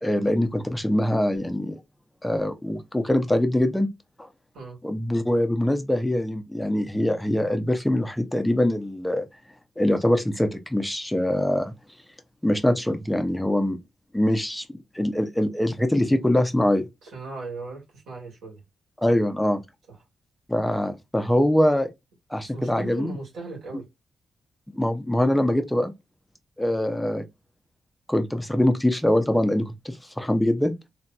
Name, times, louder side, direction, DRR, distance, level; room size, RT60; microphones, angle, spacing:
voice 1, 0.0-1.8 2.2-3.9 4.2-4.3 4.8-9.2 9.8-11.7 12.4-13.8 14.1-14.6 14.9-16.9 19.0-19.6 20.5-21.9 22.3-23.1 24.7-25.9 26.6-27.2 28.1-30.7, left 1 dB, 5° left, 0.6 m, -23 dB
voice 2, 17.0-18.6 22.4-23.9, right 3 dB, 90° right, 2.0 m, -37 dB
3.3 x 2.7 x 2.3 m
cardioid pair, 80°, 0 cm